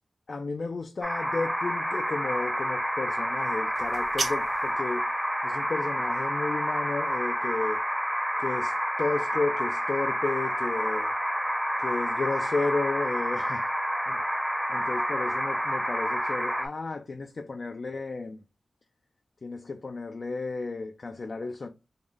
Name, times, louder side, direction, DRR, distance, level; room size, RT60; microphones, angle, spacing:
voice 1, 0.3-5.1 5.4-7.8 8.4-11.2 11.8-13.7 14.1-14.2 14.7-18.4 19.4-21.7, left 3 dB, 60° left, 0.3 m, -33 dB
sound 1, 1.0-16.7, equal, 5° right, 0.6 m, -29 dB
sound 2, 3.7-4.8, right 3 dB, 60° right, 0.7 m, -34 dB
3.5 x 2.1 x 3.4 m
wide cardioid pair, 70°, 0 cm